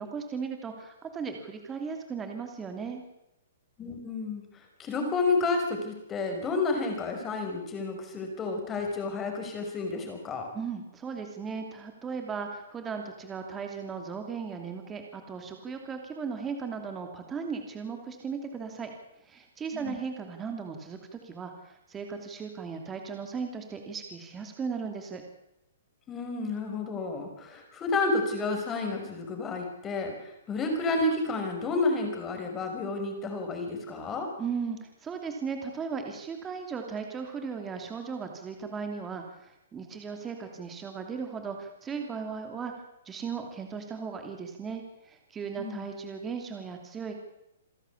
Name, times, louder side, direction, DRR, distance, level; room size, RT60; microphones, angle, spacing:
voice 1, 0.0-3.0 10.5-18.9 19.2-25.2 34.4-42.7 43.0-47.2, right 5 dB, 15° right, 4 dB, 2.8 m, -37 dB
voice 2, 3.8-4.4 4.8-10.5 19.7-20.0 26.1-34.3 45.6-45.9, left 3 dB, 20° left, 4 dB, 5.6 m, -30 dB
27.5 x 11.5 x 8.5 m, 0.84 s
hypercardioid pair, 145°, 0 cm